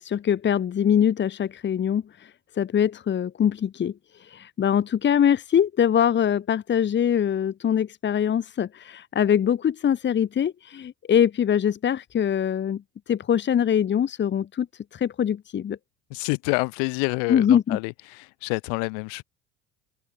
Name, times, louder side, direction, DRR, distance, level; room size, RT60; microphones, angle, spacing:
voice 1, 0.0-14.7 14.9-15.8 17.3-17.8, left 9 dB, 35° left, 1.6 m, -23 dB
voice 2, 16.1-19.2, left 40 dB or more, 75° left, 5.0 m, -28 dB
hypercardioid pair, 75°, 30 cm